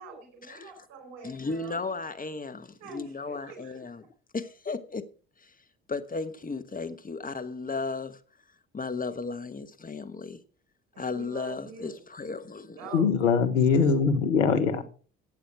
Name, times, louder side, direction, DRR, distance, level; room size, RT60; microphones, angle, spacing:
voice 1, 0.0-1.9 2.8-3.8 10.9-12.0 12.8-13.1 13.5-13.9 14.3-14.8, right 4 dB, 80° right, 4.8 m, -45 dB
voice 2, 1.2-4.1 4.3-5.1 5.4-5.5 5.9-8.2 8.7-10.4 11.0-12.8, left 4 dB, 25° left, 1.2 m, -35 dB
voice 3, 12.9-14.8, left 5 dB, 90° left, 1.3 m, -22 dB
13.0 x 8.5 x 4.9 m
hypercardioid pair, 55°, 37 cm